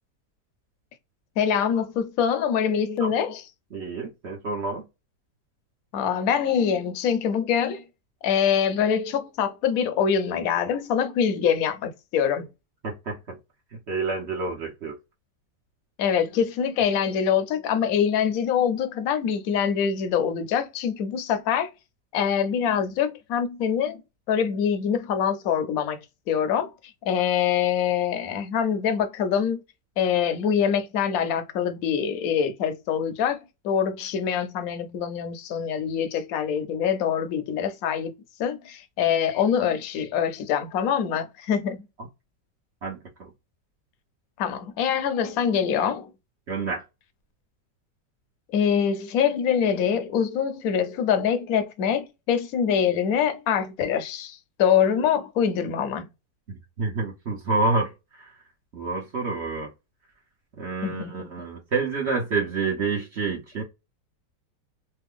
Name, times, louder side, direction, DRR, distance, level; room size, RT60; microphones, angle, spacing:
voice 1, 1.4-3.4 5.9-7.8 8.2-12.5 16.0-21.7 22.1-24.0 24.3-26.0 26.3-26.7 27.0-29.6 30.0-41.8 44.4-46.1 48.5-56.1 60.8-61.5, left 8 dB, 65° left, 1.0 m, -24 dB
voice 2, 3.7-4.8 12.8-13.4 13.9-14.9 42.0-42.1 42.8-43.3 46.5-46.8 56.5-58.3 58.7-59.7 60.6-63.6, right 3 dB, 50° right, 0.9 m, -28 dB
3.3 x 2.1 x 3.5 m
omnidirectional pair, 1.9 m